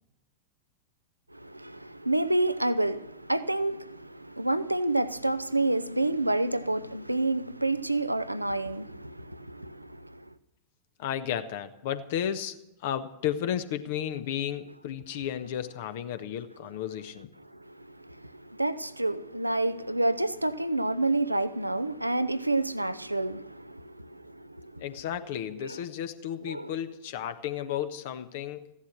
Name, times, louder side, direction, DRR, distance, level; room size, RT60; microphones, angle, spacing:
voice 1, 1.3-10.3 17.5-24.8 25.6-25.8 26.4-26.7, right 2 dB, 85° right, 0.7 m, -29 dB
voice 2, 11.0-17.3 24.8-28.7, left 10 dB, 50° left, 1.2 m, -33 dB
15.5 x 11.5 x 7.4 m
figure-of-eight pair, 90°, 0 cm